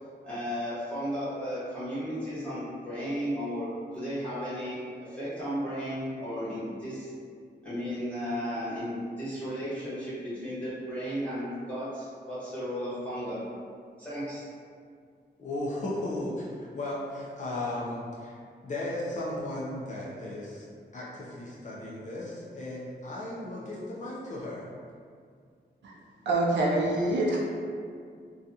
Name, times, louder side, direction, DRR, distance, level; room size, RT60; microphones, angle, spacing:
voice 1, 0.2-7.1 7.6-13.4 14.0-14.4, equal, 5° left, -13 dB, 1.2 m, -34 dB
voice 2, 15.4-20.7 20.9-24.7, left 1 dB, 45° left, -6 dB, 0.4 m, -35 dB
voice 3, 26.3-27.4, right 2 dB, 85° right, -5 dB, 0.4 m, -25 dB
2.5 x 2.3 x 2.7 m, 2.2 s
wide cardioid pair, 130°, 18 cm